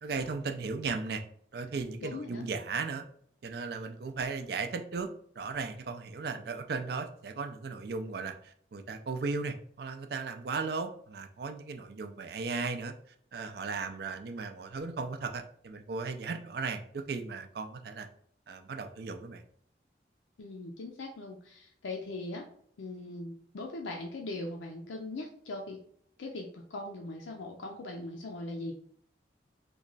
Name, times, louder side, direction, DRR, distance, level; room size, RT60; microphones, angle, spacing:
voice 1, 0.0-1.2 1.5-3.0 3.4-5.1 5.4-12.9 13.3-18.1 18.5-19.4, right 4 dB, 55° right, 7 dB, 0.4 m, -36 dB
voice 2, 2.0-2.5 20.4-22.5 22.8-25.8 26.2-28.7, left 2 dB, 85° left, 1 dB, 0.4 m, -40 dB
2.9 x 2.2 x 3.8 m, 0.63 s
head